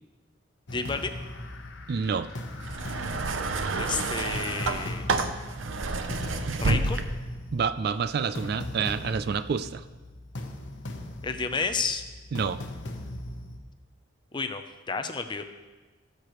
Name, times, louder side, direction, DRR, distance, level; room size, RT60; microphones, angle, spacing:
sound 1, 0.7-13.6, left 1 dB, 65° left, 0.9 m, -39 dB
voice 1, 0.7-1.1 3.8-5.1 6.6-7.0 11.2-12.0 14.3-14.6 14.9-15.4, left 4 dB, 25° left, 8 dB, 0.5 m, -31 dB
voice 2, 1.9-2.3 6.5-6.6 7.5-9.8 12.3-12.6, right 6 dB, 55° right, 12 dB, 0.3 m, -28 dB
sound 2, 2.6-7.4 8.3-8.5, right 3 dB, 80° right, 0.7 m, -29 dB
18.0 x 6.7 x 3.1 m, 1.3 s
head